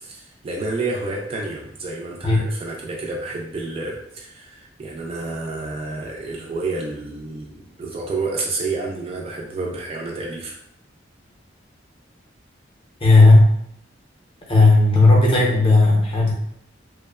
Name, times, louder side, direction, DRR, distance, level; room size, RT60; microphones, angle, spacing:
voice 1, 0.0-10.6, right 3 dB, 30° right, -1 dB, 0.3 m, -29 dB
voice 2, 13.0-13.4 14.5-16.3, left 2 dB, 30° left, -3 dB, 0.6 m, -13 dB
2.9 x 2.0 x 2.3 m, 0.74 s
head